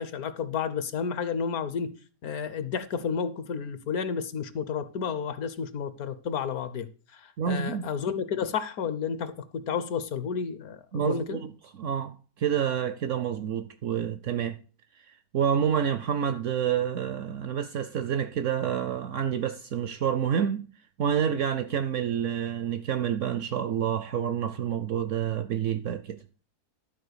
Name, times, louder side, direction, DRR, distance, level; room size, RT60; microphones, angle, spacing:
voice 1, 0.0-1.9 2.2-11.4, left 6 dB, 65° left, 1.3 m, -31 dB
voice 2, 7.4-7.9 10.9-11.5 11.8-14.6 15.3-20.6 21.0-26.2, right 8 dB, 65° right, 0.8 m, -28 dB
12.0 x 4.2 x 6.8 m
omnidirectional pair, 1.7 m